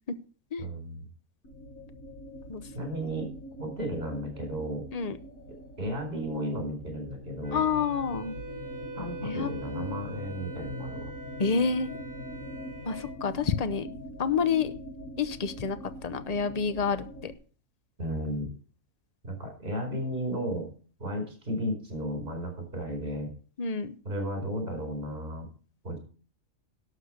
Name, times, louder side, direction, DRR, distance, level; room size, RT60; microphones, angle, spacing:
voice 1, 0.6-1.0 2.7-3.3 3.6-4.8 5.8-7.6 8.9-11.1 18.0-18.5 19.2-20.7 21.0-23.3 24.0-25.5 25.8-26.0, equal, 45° right, 3 dB, 4.9 m, -34 dB
sound 1, 1.4-17.3, left 1 dB, 85° left, 2.0 m, -43 dB
voice 2, 2.5-2.9 4.9-5.2 7.5-8.3 9.2-10.1 11.4-11.9 12.8-13.9 14.2-14.7 15.2-17.3 23.6-24.0, left 5 dB, 35° left, 12 dB, 0.7 m, -29 dB
Wind instrument woodwind instrument, 7.4-13.1, right 3 dB, 15° right, 0.8 m, -44 dB
12.0 x 6.6 x 6.5 m, 0.41 s
omnidirectional pair, 1.4 m